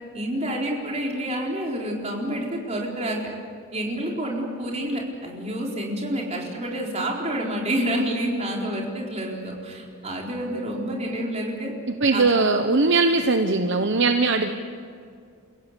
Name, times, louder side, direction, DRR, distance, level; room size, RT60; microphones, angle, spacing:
voice 1, 0.1-3.2 3.7-11.7 12.1-12.3, right 1 dB, 30° right, -1 dB, 4.1 m, -28 dB
voice 2, 12.0-14.5, right 3 dB, 55° right, 6 dB, 0.9 m, -20 dB
29.0 x 16.0 x 8.3 m, 2.2 s
head